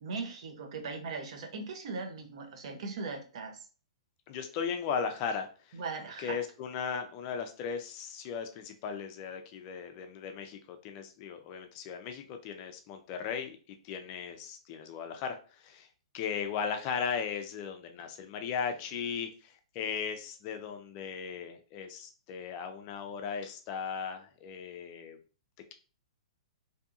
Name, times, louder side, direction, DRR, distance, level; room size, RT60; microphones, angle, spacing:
voice 1, 0.0-3.7 5.7-6.4, right 4 dB, 60° right, 4 dB, 0.6 m, -39 dB
voice 2, 4.3-5.8 6.2-15.9 16.1-25.2, left 6 dB, 30° left, 6 dB, 0.4 m, -37 dB
2.6 x 2.6 x 2.4 m, 0.37 s
hypercardioid pair, 155°, 4 cm